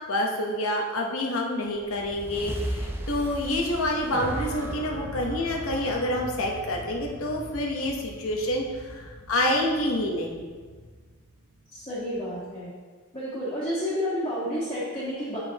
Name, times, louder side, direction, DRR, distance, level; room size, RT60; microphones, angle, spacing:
voice 1, 0.1-10.4, left 1 dB, 85° left, 0 dB, 1.0 m, -28 dB
sound 1, 1.7-6.3, equal, 10° right, 0.4 m, -37 dB
sound 2, 4.1-12.4, right 1 dB, 55° right, 0.6 m, -39 dB
voice 2, 11.7-12.7 13.1-15.4, equal, 25° left, -13 dB, 1.7 m, -30 dB
8.3 x 5.0 x 2.9 m, 1.5 s
head